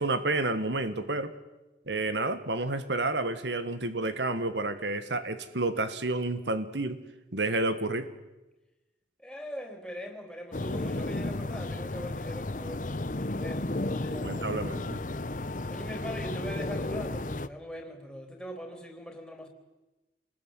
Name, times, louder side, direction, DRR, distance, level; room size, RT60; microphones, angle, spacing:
voice 1, 0.0-1.3 1.9-7.0 7.3-8.1 14.2-15.0, right 2 dB, 85° right, 11 dB, 1.8 m, -30 dB
voice 2, 9.2-14.6 15.7-19.5, equal, 5° left, 3 dB, 3.9 m, -42 dB
sound 1, 10.5-17.5, left 2 dB, 45° left, 0.9 m, -33 dB
27.5 x 20.5 x 9.2 m, 1.0 s
head